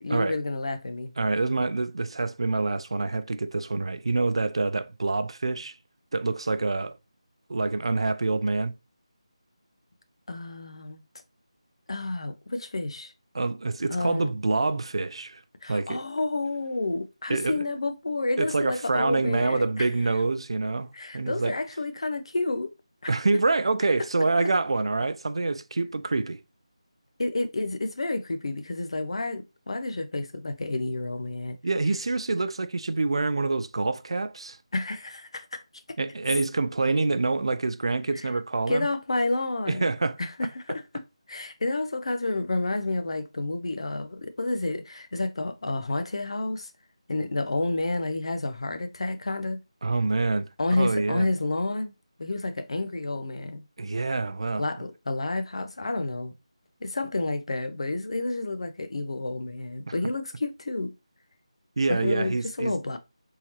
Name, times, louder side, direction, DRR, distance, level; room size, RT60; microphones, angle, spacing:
voice 1, 0.0-1.1 10.3-11.0 11.9-13.1 13.9-14.3 15.6-19.9 20.9-22.7 23.0-23.1 27.2-31.6 34.7-35.6 38.7-39.9 40.2-41.0 41.3-46.7 47.1-49.6 50.6-51.9 52.2-53.6 54.6-56.3 56.8-60.9 61.9-63.0, left 2 dB, 60° left, 0.6 m, -30 dB
voice 2, 1.2-5.7 6.1-7.0 7.5-8.7 13.3-15.4 15.7-16.0 17.3-17.6 18.4-20.9 21.1-21.6 23.1-26.4 31.6-34.6 36.0-38.9 39.7-40.2 49.8-50.5 50.8-51.3 53.8-54.7 59.9-60.0 61.8-62.7, right 3 dB, 55° right, 0.3 m, -26 dB
3.7 x 2.9 x 2.9 m
figure-of-eight pair, 170°, 3 cm